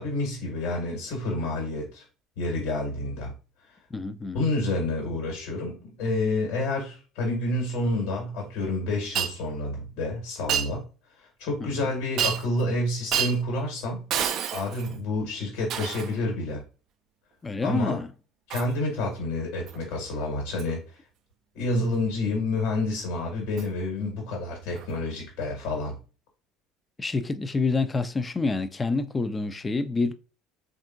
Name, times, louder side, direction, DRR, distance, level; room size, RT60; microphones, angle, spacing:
voice 1, 0.0-2.0 2.4-3.3 4.3-10.8 11.4-14.0 14.5-16.6 17.6-18.0 18.5-20.8 21.5-25.9, left 2 dB, 70° left, 1.4 m, -29 dB
voice 2, 3.9-4.4 11.6-11.9 17.4-18.1 21.7-21.8 27.0-30.1, left 3 dB, 25° left, 0.4 m, -28 dB
Shatter, 9.2-9.3 10.5-10.7 12.2-12.6 13.1-13.4 14.1-15.0 15.7-16.2 18.5-18.7 19.7-19.8 20.6-20.7 23.6-23.7 24.8-24.9, right 9 dB, 55° right, 0.3 m, -28 dB
3.5 x 2.5 x 2.5 m
hypercardioid pair, 65°, 0 cm